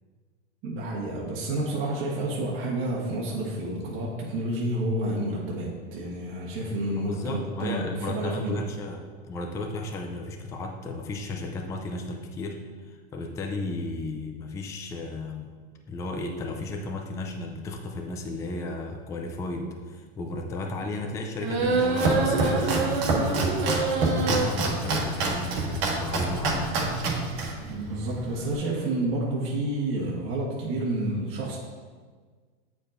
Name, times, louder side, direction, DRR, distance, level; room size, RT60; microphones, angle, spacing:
voice 1, 0.6-8.7 27.7-31.6, right 1 dB, 40° right, -4 dB, 1.2 m, -29 dB
voice 2, 7.0-15.5 15.9-26.8, left 2 dB, 10° left, 3 dB, 0.3 m, -34 dB
sound 1, 21.4-24.4, right 3 dB, 90° right, 1.2 m, -26 dB
Domestic sounds home sounds, 21.6-28.6, right 2 dB, 65° right, 1.4 m, -27 dB
8.3 x 4.8 x 2.6 m, 1.5 s
supercardioid pair, 130°, 32 cm